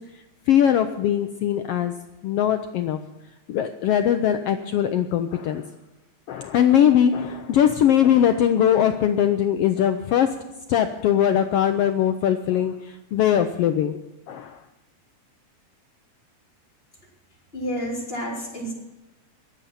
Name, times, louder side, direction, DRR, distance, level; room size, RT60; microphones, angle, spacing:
voice 1, 0.5-1.9 2.2-3.0 3.5-5.6 6.3-10.3 10.7-14.0 14.3-14.6, left 10 dB, 75° left, 8 dB, 1.4 m, -21 dB
voice 2, 17.5-18.7, equal, 20° left, -4 dB, 4.1 m, -29 dB
21.5 x 7.9 x 5.7 m, 1.0 s
omnidirectional pair, 3.3 m